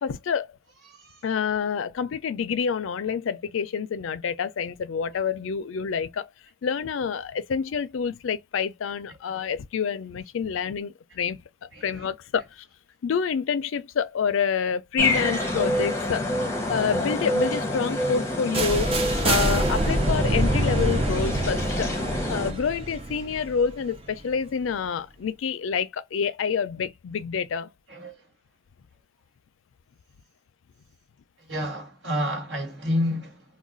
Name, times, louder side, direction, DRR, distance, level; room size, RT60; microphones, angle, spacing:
voice 1, 0.0-0.6 1.2-6.3 6.6-11.4 11.8-12.6 13.0-18.9 19.2-21.9 22.3-27.7, left 6 dB, 80° left, 0.4 m, -28 dB
voice 2, 0.9-1.2 11.7-12.1 27.9-28.2 31.5-33.4, equal, 70° right, 1.5 m, -29 dB
sound 1, 15.0-22.5, left 1 dB, 15° left, 0.7 m, -27 dB
sound 2, 18.5-24.4, right 2 dB, 30° right, 0.5 m, -26 dB
2.3 x 2.2 x 3.7 m
head